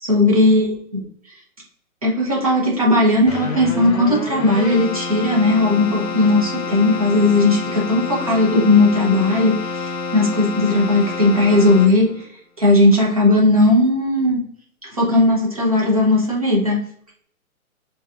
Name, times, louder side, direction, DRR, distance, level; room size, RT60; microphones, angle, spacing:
voice 1, 0.0-0.7 0.9-1.0 2.0-12.2 12.6-14.4 14.9-16.8, left 2 dB, 25° right, -3 dB, 0.7 m, -17 dB
Keyboard (musical), 3.3-12.2, left 4 dB, 50° left, 0.8 m, -28 dB
5.3 x 2.8 x 2.3 m, 0.65 s
hypercardioid pair, 180°, 43 cm